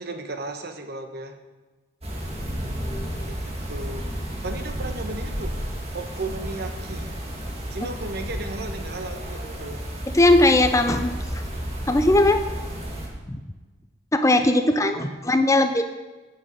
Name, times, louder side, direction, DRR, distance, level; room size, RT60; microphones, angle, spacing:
voice 1, 0.0-1.4 3.2-3.4 3.7-4.1 4.4-5.6 5.9-7.2 7.7-9.8 14.7-15.2, right 2 dB, 50° right, 6 dB, 1.1 m, -35 dB
sound 1, 2.0-13.1, equal, 30° right, 1.9 m, -32 dB
voice 2, 10.1-11.1 11.9-12.4 13.3-13.4 14.1-15.8, left 2 dB, 15° left, 8 dB, 0.5 m, -18 dB
14.5 x 6.3 x 5.4 m, 1.2 s
head